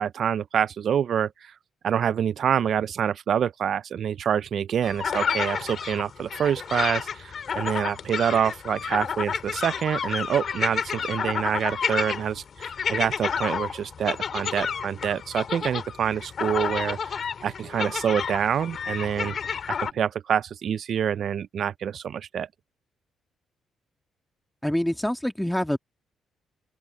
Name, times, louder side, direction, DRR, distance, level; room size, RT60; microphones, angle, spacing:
voice 1, 0.0-1.5 1.8-19.4 19.7-22.5, right 8 dB, 60° right, 0.3 m, -26 dB
sound 1, 4.8-19.9, left 7 dB, 50° left, 4.0 m, -30 dB
voice 2, 24.6-25.8, left 1 dB, 5° left, 2.3 m, -25 dB
open air
cardioid pair, 90°, 0 cm